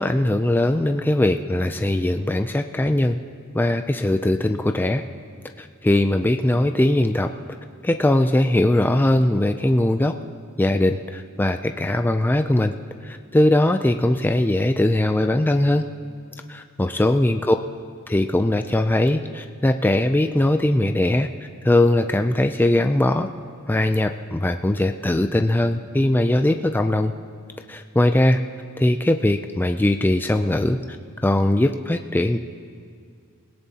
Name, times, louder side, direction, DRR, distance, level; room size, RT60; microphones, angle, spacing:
voice 1, 0.0-3.2 3.5-5.0 5.6-7.3 7.8-10.1 10.6-12.7 13.0-15.9 16.5-17.6 18.1-21.3 21.6-23.3 23.7-27.1 27.7-28.4 28.8-31.0 31.2-32.4, left 1 dB, 10° left, 6 dB, 0.3 m, -20 dB
28.0 x 17.5 x 2.8 m, 2.2 s
head